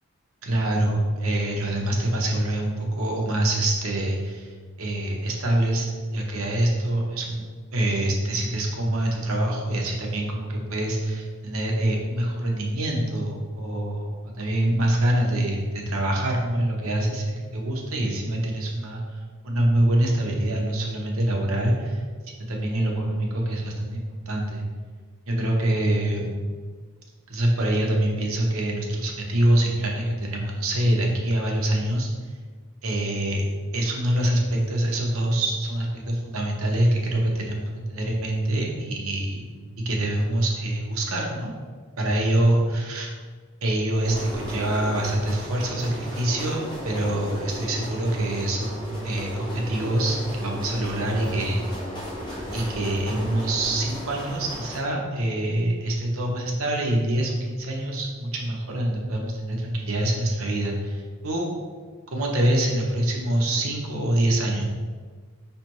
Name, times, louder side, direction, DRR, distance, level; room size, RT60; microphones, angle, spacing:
voice 1, 0.4-4.5 4.8-7.4 7.7-22.0 22.5-24.6 25.3-26.2 27.3-32.1 32.8-33.4 33.7-39.5 39.8-41.5 42.0-43.1 43.6-51.7 52.5-61.5 62.1-64.7, right 1 dB, 90° right, 0 dB, 0.9 m, -25 dB
sound 1, 44.0-54.8, equal, 20° left, 0.7 m, -35 dB
5.2 x 3.3 x 3.0 m, 1.5 s
head